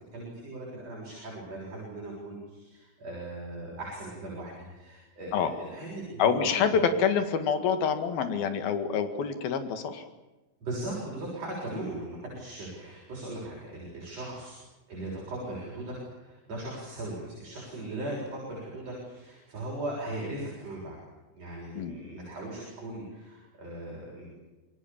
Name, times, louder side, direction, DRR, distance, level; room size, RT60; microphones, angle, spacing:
voice 1, 0.1-6.7 10.6-14.6 14.9-21.0 21.4-24.3, right 1 dB, 40° right, -3 dB, 7.9 m, -38 dB
voice 2, 6.2-10.1 21.8-22.0, left 6 dB, 75° left, 9 dB, 3.8 m, -26 dB
27.5 x 21.5 x 7.3 m, 1.1 s
omnidirectional pair, 4.3 m